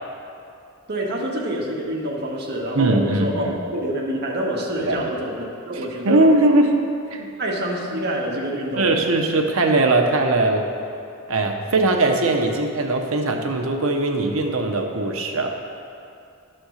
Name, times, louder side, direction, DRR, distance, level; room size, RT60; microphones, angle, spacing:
voice 1, 0.9-6.3 7.4-8.9, right 1 dB, 50° right, -2 dB, 1.4 m, -26 dB
voice 2, 2.7-3.6 4.8-5.1 5.7-6.8 7.1-7.3 8.8-10.6 11.3-15.6, right 2 dB, 75° right, 3 dB, 0.9 m, -20 dB
11.5 x 4.3 x 6.4 m, 2.6 s
head